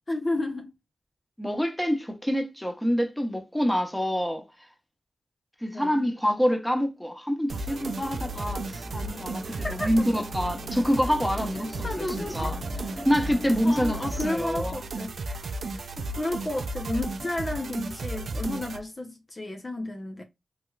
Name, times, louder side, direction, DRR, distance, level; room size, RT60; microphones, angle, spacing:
voice 1, 0.1-0.7 5.7-6.0 9.5-10.1 11.8-12.5 13.6-15.2 15.7-20.2, left 2 dB, 40° left, 0.7 m, -32 dB
voice 2, 1.4-4.4 5.6-12.0 12.3-14.0 14.2-14.8 15.3-15.4, equal, 5° left, 1.0 m, -26 dB
sound 1, 7.5-18.8, right 2 dB, 75° right, 0.4 m, -34 dB
sound 2, 7.7-14.3, left 1 dB, 70° left, 1.3 m, -43 dB
3.2 x 2.9 x 2.3 m
cardioid pair, 40°, 0 cm